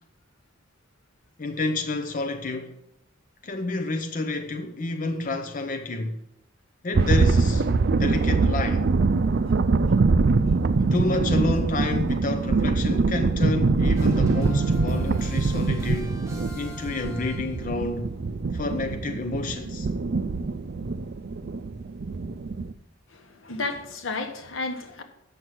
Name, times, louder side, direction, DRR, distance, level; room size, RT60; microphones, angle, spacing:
voice 1, 1.4-2.8 3.4-6.2 6.8-7.7 8.0-8.9 10.9-16.2 16.5-18.1 18.5-19.9, left 2 dB, 45° left, 0.7 m, -29 dB
sound 1, 6.9-22.7, right 3 dB, 55° right, 0.5 m, -23 dB
sound 2, 13.9-17.8, equal, 15° right, 1.9 m, -44 dB
voice 2, 23.1-25.0, left 3 dB, 85° left, 1.3 m, -32 dB
8.0 x 6.3 x 7.6 m
head